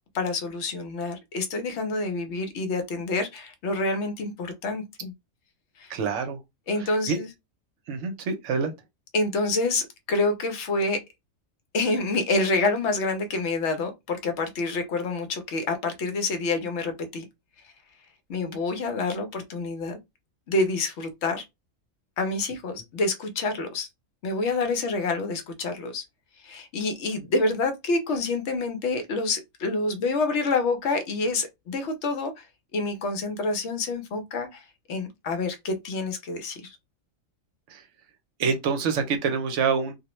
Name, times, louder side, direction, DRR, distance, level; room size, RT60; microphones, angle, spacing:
voice 1, 0.1-5.1 5.8-5.9 6.7-7.3 9.1-11.0 11.7-17.2 18.3-20.0 20.5-21.4 22.2-23.9 24.2-26.0 26.4-32.5 32.7-36.8, left 3 dB, 65° left, 0.9 m, -27 dB
voice 2, 5.9-6.4 6.8-7.2 7.9-8.7 37.7-37.8 38.4-40.0, right 5 dB, 70° right, 0.9 m, -26 dB
2.4 x 2.0 x 2.9 m
omnidirectional pair, 1.4 m